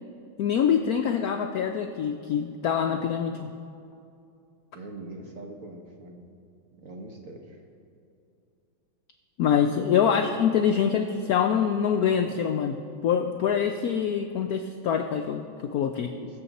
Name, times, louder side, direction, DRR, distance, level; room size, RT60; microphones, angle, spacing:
voice 1, 0.4-3.5 9.4-16.1, left 8 dB, 75° left, 6 dB, 0.8 m, -25 dB
voice 2, 4.7-6.4 6.8-7.6 10.1-10.4 16.1-16.4, right 2 dB, 50° right, 2 dB, 1.4 m, -42 dB
21.5 x 7.3 x 4.1 m, 2.6 s
omnidirectional pair, 2.1 m